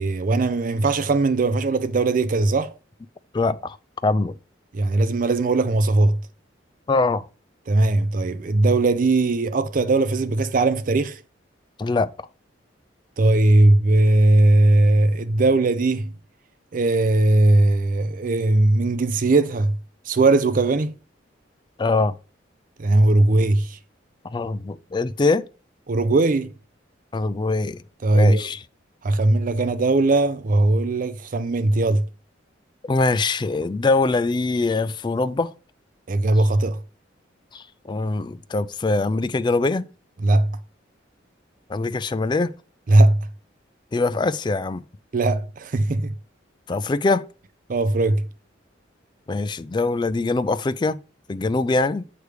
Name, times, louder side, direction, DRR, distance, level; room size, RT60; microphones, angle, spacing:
voice 1, 0.0-2.7 4.7-6.2 7.7-11.2 13.2-16.1 16.7-19.8 20.1-20.9 22.8-23.8 25.9-26.5 28.0-28.5 29.0-32.0 36.1-36.8 40.2-40.5 42.9-43.3 45.1-46.2 47.7-48.3, right 2 dB, 45° right, 0.4 m, -19 dB
voice 2, 3.3-3.8 4.0-4.4 6.9-7.2 11.8-12.1 21.8-22.1 24.2-25.5 27.1-27.8 28.1-28.6 32.8-35.5 37.5-39.9 41.7-42.5 43.9-44.8 46.7-47.3 49.3-51.0 51.3-52.1, left 3 dB, 25° left, 0.3 m, -23 dB
7.9 x 3.3 x 4.8 m
head